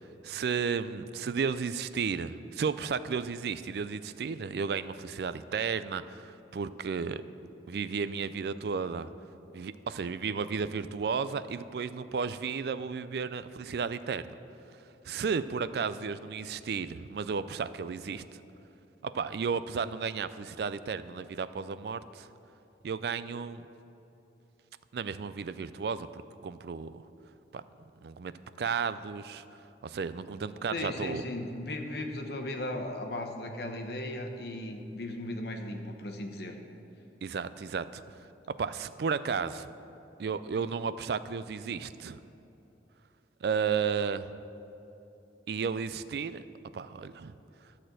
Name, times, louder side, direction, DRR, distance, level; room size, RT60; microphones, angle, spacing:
voice 1, 0.2-7.2 7.7-9.1 9.5-14.3 15.0-18.4 19.0-22.3 22.8-23.6 24.9-27.0 27.5-27.6 28.0-28.3 28.6-29.4 29.8-31.2 37.2-38.0 38.6-39.7 40.2-42.2 43.4-44.3 45.5-46.4 46.7-47.3, right 5 dB, 65° right, 14 dB, 0.3 m, -33 dB
voice 2, 30.7-36.6, left 1 dB, 65° left, 4 dB, 0.9 m, -36 dB
12.5 x 4.3 x 7.7 m, 3.0 s
head